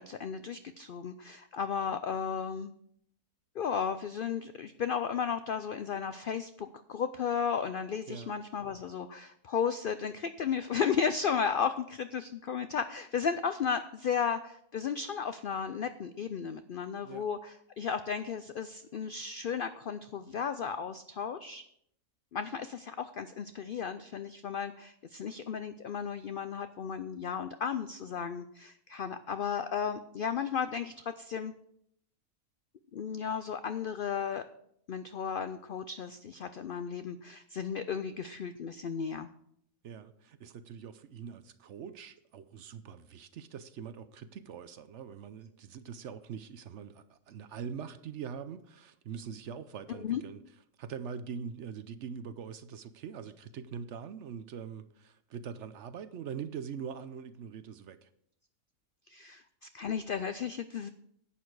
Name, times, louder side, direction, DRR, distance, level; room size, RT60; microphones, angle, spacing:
voice 1, 0.0-2.7 3.5-21.6 22.3-31.5 32.9-34.4 34.9-39.3 50.0-50.2 59.1-60.9, left 7 dB, 75° left, 0.5 m, -34 dB
voice 2, 8.1-8.4 17.0-17.3 39.8-50.4 50.8-58.1, right 7 dB, 65° right, 0.8 m, -43 dB
11.0 x 8.3 x 4.7 m
omnidirectional pair, 1.5 m